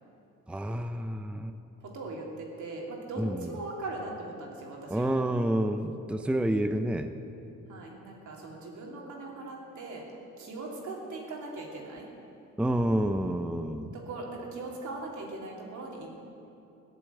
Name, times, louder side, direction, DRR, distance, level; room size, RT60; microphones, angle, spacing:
voice 1, 0.5-1.5 3.2-3.5 4.9-7.1 12.6-13.9, right 1 dB, 5° right, 8 dB, 0.6 m, -29 dB
voice 2, 1.8-5.1 7.7-10.0 10.4-12.1 13.9-16.1, right 2 dB, 75° right, -1 dB, 3.0 m, -40 dB
15.5 x 7.0 x 9.7 m, 2.8 s
cardioid pair, 90°, 30 cm